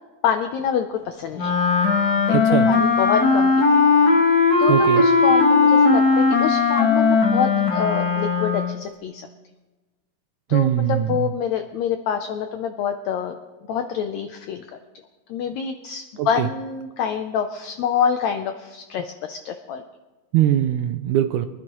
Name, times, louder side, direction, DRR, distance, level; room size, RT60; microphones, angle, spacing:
voice 1, 0.2-1.6 2.3-3.8 4.6-9.3 10.5-13.4 13.7-14.6 15.3-19.8, left 7 dB, 85° left, 7 dB, 1.6 m, -26 dB
Wind instrument woodwind instrument, 1.3-8.8, left 4 dB, 45° left, 1.4 m, -18 dB
voice 2, 2.3-2.7 4.7-5.0 10.5-11.3 16.2-16.5 20.3-21.5, right 12 dB, 80° right, 7 dB, 1.8 m, -21 dB
23.0 x 11.0 x 3.0 m, 1.2 s
omnidirectional pair, 3.9 m